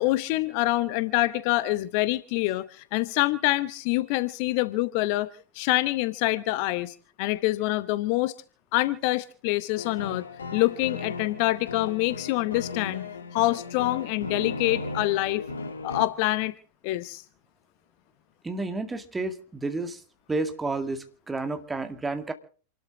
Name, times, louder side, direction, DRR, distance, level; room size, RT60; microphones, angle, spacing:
voice 1, 0.0-5.3 5.5-8.3 8.7-10.3 10.5-13.1 13.3-15.4 15.8-16.5 16.8-17.2, left 18 dB, 45° left, 0.8 m, -26 dB
sound 1, 9.8-16.1, left 3 dB, 70° left, 1.6 m, -36 dB
voice 2, 18.4-20.0 20.3-22.3, right 3 dB, 10° right, 2.0 m, -31 dB
28.0 x 12.5 x 3.7 m
figure-of-eight pair, 90°, 0 cm